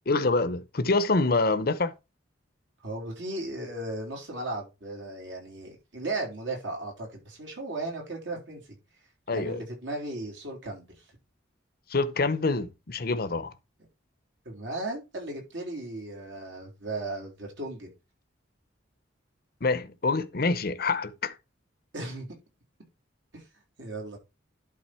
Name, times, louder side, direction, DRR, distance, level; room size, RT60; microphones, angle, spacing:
voice 1, 0.1-1.9 9.3-9.6 11.9-13.5 19.6-21.3, left 3 dB, 50° left, 0.8 m, -26 dB
voice 2, 2.8-8.6 9.3-10.9 14.5-17.9 21.9-22.3 23.3-23.4 23.8-24.2, right 2 dB, 70° right, 3.7 m, -36 dB
11.0 x 4.0 x 4.4 m
head